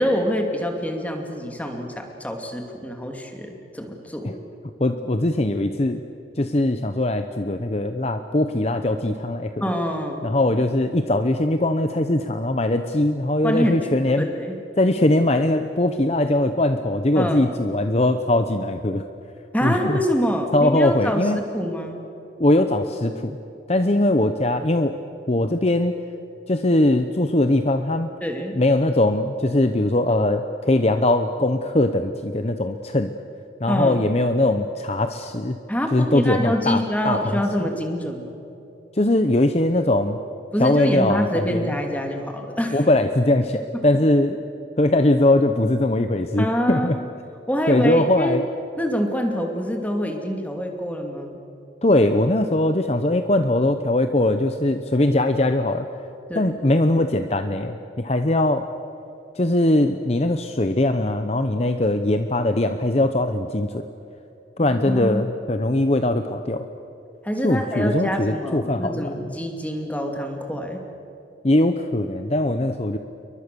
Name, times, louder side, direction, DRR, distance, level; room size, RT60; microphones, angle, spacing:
voice 1, 0.0-4.4 9.6-10.3 13.4-14.6 17.2-17.5 19.5-22.0 28.2-28.6 33.7-34.0 35.7-38.3 40.5-42.9 46.4-47.0 47.5-48.4 48.8-51.4 56.3-56.5 64.6-65.2 67.2-70.8, equal, 10° left, 3 dB, 2.6 m, -26 dB
voice 2, 4.8-6.0 6.4-9.5 10.2-14.3 14.8-19.0 19.6-20.0 20.5-21.4 22.4-23.4 23.7-25.0 25.3-26.0 26.5-28.1 28.5-33.1 33.6-35.6 35.9-37.4 38.9-40.2 40.6-41.7 42.7-44.4 44.8-47.0 47.7-48.4 51.8-55.9 56.3-58.7 59.3-63.8 64.6-66.7 67.4-69.2 71.4-73.0, left 1 dB, 35° left, 8 dB, 0.8 m, -21 dB
29.0 x 23.5 x 6.9 m, 2.8 s
head